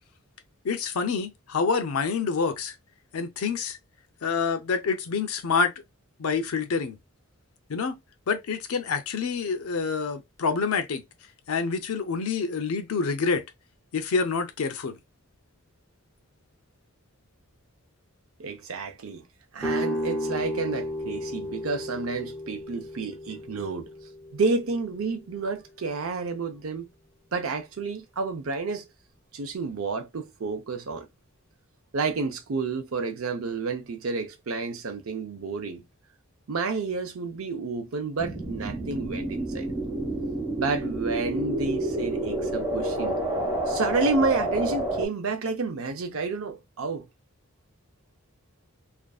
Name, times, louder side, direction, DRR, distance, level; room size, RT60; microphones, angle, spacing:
voice 1, 0.6-2.8 3.1-3.8 4.2-5.7 6.2-7.0 7.7-8.0 8.3-11.0 11.5-13.4 13.9-15.0, left 5 dB, 90° left, 0.5 m, -27 dB
voice 2, 18.4-19.2 19.5-23.9 24.3-26.9 27.3-28.8 29.3-31.1 31.9-35.8 36.5-39.7 40.6-43.2 43.7-47.1, right 4 dB, 75° right, 0.6 m, -30 dB
sound 1, 19.6-25.3, equal, 5° left, 0.6 m, -33 dB
sound 2, 38.2-45.1, right 1 dB, 10° right, 0.9 m, -29 dB
2.5 x 2.4 x 2.3 m
head